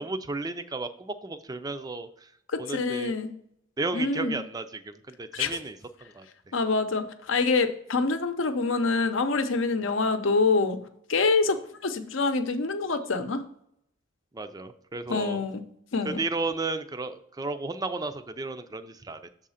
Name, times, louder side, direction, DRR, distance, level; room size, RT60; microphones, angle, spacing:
voice 1, 0.0-2.3 2.6-3.1 3.8-6.3 14.3-15.4 16.0-19.2, right 3 dB, 20° right, 10 dB, 0.4 m, -33 dB
voice 2, 2.5-3.3 3.9-4.4 5.3-5.5 6.5-10.8 11.1-13.4 15.1-15.6 15.9-16.2, left 3 dB, 75° left, 8 dB, 0.7 m, -26 dB
7.1 x 3.7 x 5.6 m, 0.71 s
head